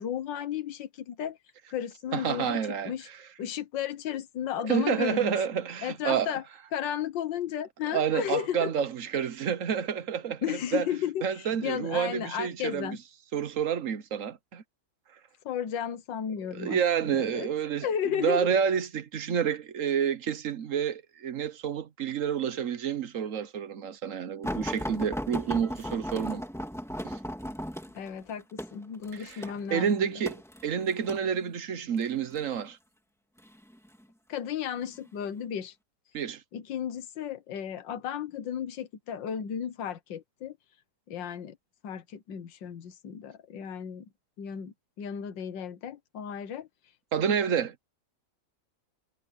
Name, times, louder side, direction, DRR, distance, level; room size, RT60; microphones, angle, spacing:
voice 1, 0.0-1.4 1.7-2.6 2.9-3.1 3.4-5.4 5.8-6.4 6.7-8.7 10.4-13.0 15.5-17.5 17.8-18.5 27.9-30.1 34.3-35.7 36.5-40.6 41.1-41.6 41.8-44.1 44.4-46.7, left 9 dB, 85° left, 1.8 m, -34 dB
voice 2, 2.1-3.2 4.6-6.4 7.9-10.4 10.7-10.9 11.2-13.0 13.3-14.6 16.5-17.9 18.2-26.4 27.0-27.2 29.1-30.3 30.6-32.8 36.1-36.4 47.1-47.7, right 8 dB, 55° right, 1.2 m, -29 dB
sound 1, 24.4-31.3 32.0-32.4 33.4-34.0 34.8-35.0 35.3-35.4, equal, ahead, 2.2 m, -36 dB
omnidirectional pair, 1.9 m